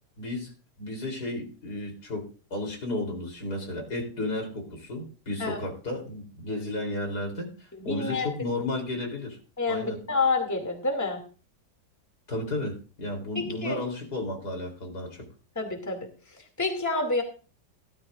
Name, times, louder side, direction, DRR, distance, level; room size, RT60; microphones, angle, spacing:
voice 1, 0.2-0.5 0.8-9.4 9.7-10.0 12.3-15.2, left 2 dB, 60° left, 3 dB, 4.2 m, -33 dB
voice 2, 7.7-8.5 9.6-11.2 13.3-13.8 15.6-16.0 16.6-17.2, left 3 dB, 10° left, 4 dB, 2.5 m, -28 dB
16.5 x 13.5 x 2.6 m, 0.36 s
omnidirectional pair, 1.9 m